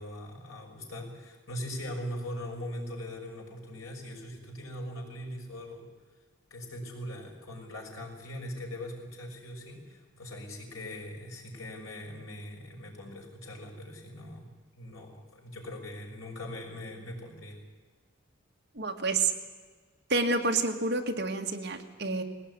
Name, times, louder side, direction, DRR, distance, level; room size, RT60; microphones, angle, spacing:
voice 1, 0.0-5.9 6.5-17.6, left 1 dB, 85° left, 0 dB, 6.1 m, -41 dB
voice 2, 18.8-19.3 20.1-22.2, right 3 dB, 50° right, 3 dB, 2.1 m, -28 dB
20.5 x 17.5 x 9.9 m, 1.4 s
head